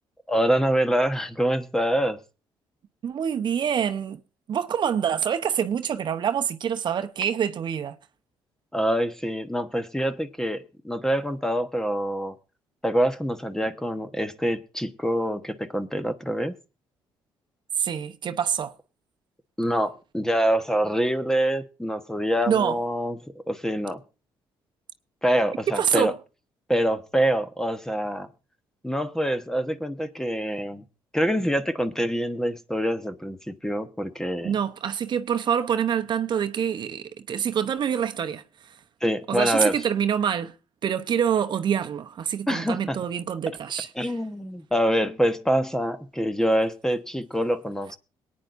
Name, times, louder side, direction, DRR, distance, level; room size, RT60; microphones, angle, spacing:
voice 1, 0.3-2.2 8.7-12.3 12.8-16.5 19.6-23.2 23.5-24.0 25.2-26.1 26.7-28.3 28.8-30.8 31.1-34.6 39.0-39.8 42.5-43.0 44.0-48.0, equal, 5° left, 1.1 m, -25 dB
voice 2, 3.0-4.2 4.5-8.0 17.8-18.7 22.5-22.8 25.7-26.1 34.4-38.7 39.3-40.5 40.8-44.1, right 8 dB, 55° right, 0.8 m, -26 dB
22.0 x 9.5 x 2.6 m
cardioid pair, 90°, 9 cm